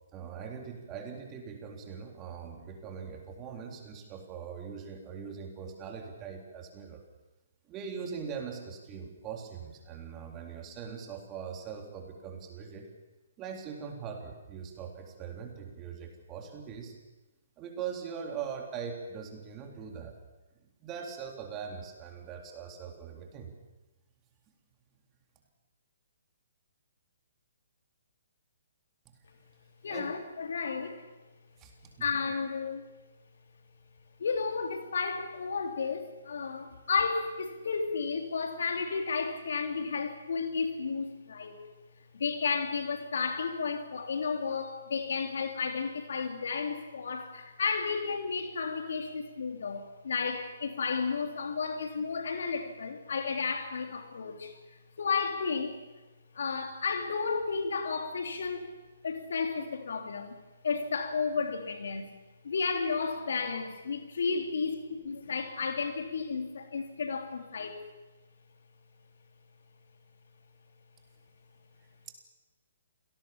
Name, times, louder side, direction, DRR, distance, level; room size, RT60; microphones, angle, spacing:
voice 1, 0.1-7.1 7.7-12.9 13.4-16.9 17.6-20.1 20.8-23.5 29.1-29.2 29.9-30.2 31.6-32.1, right 6 dB, 20° right, 3 dB, 3.8 m, -41 dB
voice 2, 29.8-31.1 32.0-32.8 34.2-41.6 42.1-55.8 56.3-58.7 59.0-60.4 60.6-62.1 62.4-67.8, left 5 dB, 60° left, 5 dB, 3.3 m, -32 dB
27.5 x 18.0 x 7.2 m, 1.1 s
figure-of-eight pair, 130°, 0 cm